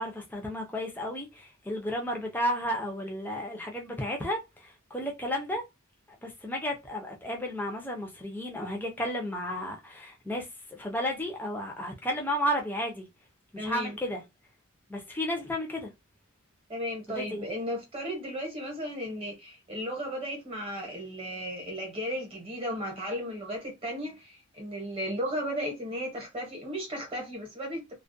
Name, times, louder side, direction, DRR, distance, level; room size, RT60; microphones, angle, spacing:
voice 1, 0.0-5.6 6.2-13.1 13.5-14.2 14.9-15.9 17.1-17.5, equal, 10° left, 0.5 m, -33 dB
voice 2, 13.6-14.0 16.7-27.8, equal, 25° right, 0.9 m, -35 dB
2.3 x 2.1 x 2.5 m
head